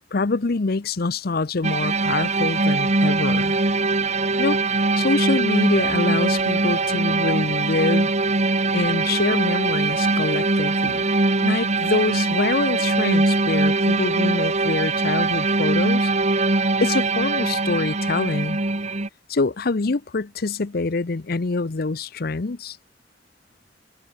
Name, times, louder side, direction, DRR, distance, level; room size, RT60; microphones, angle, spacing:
voice 1, 0.1-3.5 4.4-8.1 8.7-11.1 11.4-16.1 16.8-18.6 19.3-22.8, left 3 dB, 60° left, 0.7 m, -25 dB
sound 1, 1.6-19.1, right 3 dB, 40° right, 2.2 m, -22 dB
open air
head